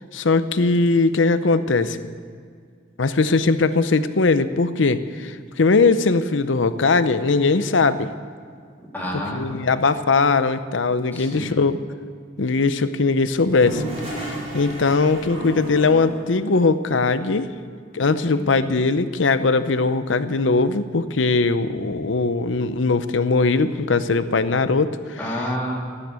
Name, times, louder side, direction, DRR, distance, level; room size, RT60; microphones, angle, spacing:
voice 1, 0.1-2.0 3.0-8.1 9.3-11.8 12.4-13.8 14.2-14.3 14.5-17.5 17.9-25.2, left 3 dB, 80° left, 12 dB, 0.7 m, -20 dB
voice 2, 8.9-9.6 11.1-11.7 18.2-18.7 25.2-25.8, equal, 10° left, -5 dB, 3.1 m, -30 dB
Toilet flush, 13.3-16.4, right 1 dB, 35° right, 5.1 m, -32 dB
13.5 x 9.8 x 8.2 m, 2.1 s
head